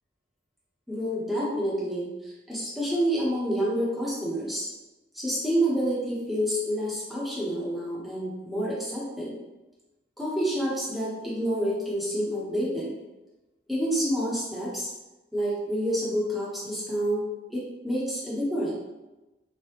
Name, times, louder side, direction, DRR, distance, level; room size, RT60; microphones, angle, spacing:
voice 1, 0.9-4.7 5.1-9.4 10.2-13.0 13.7-14.9 15.3-17.2 17.5-18.7, equal, ahead, -7 dB, 0.8 m, -28 dB
3.2 x 2.2 x 3.1 m, 1.0 s
head